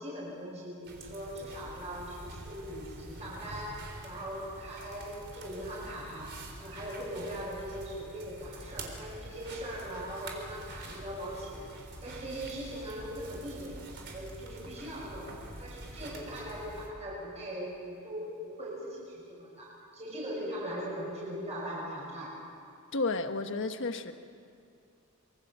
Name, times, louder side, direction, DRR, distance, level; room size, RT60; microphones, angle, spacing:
voice 1, 0.0-11.7 12.0-13.8 14.1-22.4, equal, 30° right, -6 dB, 6.5 m, -40 dB
sound 1, 0.8-16.9, right 1 dB, 50° right, 4.0 m, -46 dB
voice 2, 22.9-24.1, left 3 dB, 60° left, 7 dB, 1.4 m, -32 dB
26.0 x 24.5 x 6.9 m, 2.5 s
head